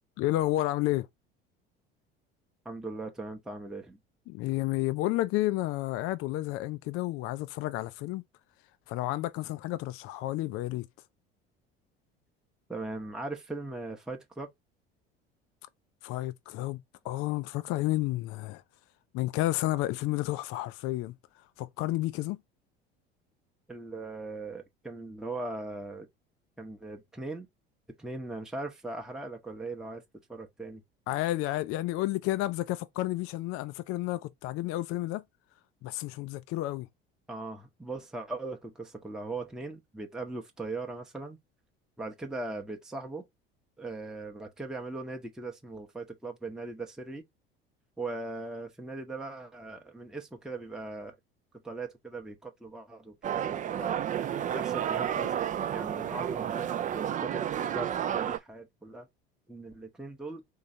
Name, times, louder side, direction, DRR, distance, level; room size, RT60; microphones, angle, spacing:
voice 1, 0.2-1.1 4.3-8.2 8.9-10.9 16.0-18.6 19.1-22.4 31.1-35.2 35.8-36.9, left 16 dB, 50° left, 0.4 m, -31 dB
voice 2, 2.6-4.0 12.7-14.5 23.7-26.1 26.6-27.5 28.0-30.0 30.3-30.8 37.3-41.4 42.0-43.2 43.8-47.2 48.0-51.1 51.6-54.0 54.5-55.3 55.7-56.7 56.9-59.1 59.5-60.4, right 2 dB, ahead, 0.8 m, -39 dB
sound 1, 53.2-58.4, right 9 dB, 25° right, 0.4 m, -31 dB
3.9 x 3.1 x 2.6 m
hypercardioid pair, 70°, 30 cm